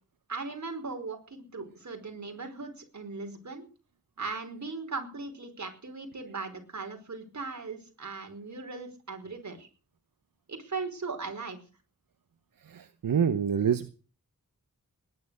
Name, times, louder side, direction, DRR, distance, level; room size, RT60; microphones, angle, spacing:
voice 1, 0.3-3.7 4.2-9.7 10.5-11.6, right 4 dB, 55° right, 4 dB, 5.2 m, -38 dB
voice 2, 12.7-13.9, right 7 dB, 85° right, 11 dB, 1.0 m, -27 dB
19.5 x 11.0 x 6.6 m, 0.38 s
wide cardioid pair, 95°, 33 cm